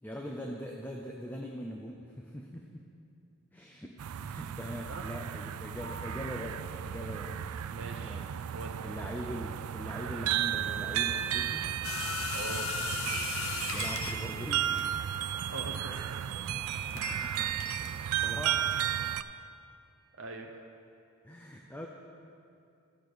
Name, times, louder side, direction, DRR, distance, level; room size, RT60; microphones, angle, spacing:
voice 1, 0.0-2.9 3.5-7.4 8.0-8.3 8.8-11.7 13.7-14.7 16.7-17.5 17.8-18.7 21.2-21.9, equal, 10° left, 0 dB, 0.5 m, -42 dB
sound 1, 4.0-19.2, right 10 dB, 80° right, 0.3 m, -34 dB
voice 2, 7.7-8.2 8.5-8.7 12.3-12.7 15.5-15.9 20.2-20.7, right 2 dB, 60° right, 2 dB, 0.7 m, -42 dB
sound 2, 11.8-17.3 17.6-17.9, left 6 dB, 70° left, 0.6 m, -37 dB
13.5 x 5.1 x 6.2 m, 2.6 s
head